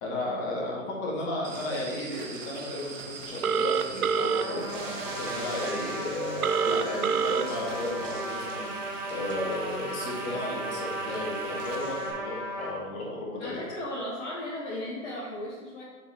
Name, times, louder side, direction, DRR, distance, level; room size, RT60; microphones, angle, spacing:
voice 1, 0.0-13.6, left 1 dB, 25° left, -4 dB, 1.8 m, -34 dB
sound 1, 1.4-12.1, right 4 dB, 60° right, 1.8 m, -42 dB
Telephone, 3.4-4.4 6.4-7.4, right 7 dB, 85° right, 0.6 m, -25 dB
Trumpet, 4.2-12.7, right 1 dB, 5° right, 1.3 m, -36 dB
voice 2, 13.4-15.8, left 1 dB, 55° left, -6 dB, 1.7 m, -36 dB
7.3 x 4.2 x 4.2 m, 1.4 s
hypercardioid pair, 135°, 42 cm